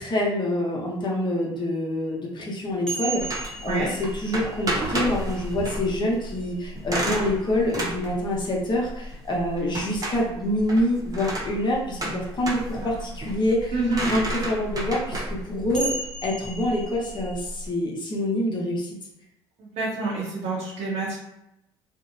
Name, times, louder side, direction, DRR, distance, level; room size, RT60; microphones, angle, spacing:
voice 1, 0.0-3.9 4.1-15.9 16.2-18.9, left 1 dB, 35° left, -2 dB, 0.9 m, -26 dB
sound 1, 2.9-7.1 9.0-9.1 12.1-12.2 15.7-17.3, right 3 dB, 5° left, 0.9 m, -36 dB
sound 2, 3.2-17.7, right 1 dB, 30° right, 0.8 m, -32 dB
voice 2, 13.7-14.1 19.6-21.2, right 3 dB, 60° right, -5 dB, 0.7 m, -27 dB
2.7 x 2.0 x 2.5 m, 0.86 s
hypercardioid pair, 65°, 13 cm